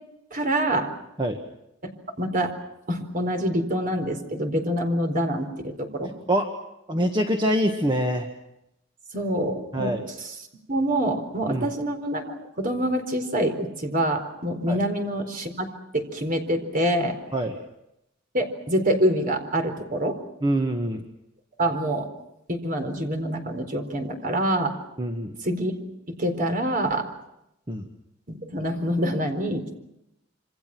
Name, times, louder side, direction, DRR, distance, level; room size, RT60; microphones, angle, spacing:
voice 1, 0.3-0.9 2.2-2.5 2.9-6.1 9.1-10.0 10.7-15.7 15.9-17.2 18.3-20.2 21.6-22.1 22.5-24.7 25.4-25.7 26.2-27.0 28.3-29.8, right 1 dB, 45° right, 6 dB, 4.3 m, -26 dB
voice 2, 6.9-8.3 9.7-10.0 11.5-11.7 14.7-14.8 17.3-17.6 20.4-21.0 25.0-25.3 27.7-27.8, right 1 dB, 25° right, 4 dB, 1.7 m, -24 dB
27.5 x 26.0 x 6.2 m, 0.85 s
head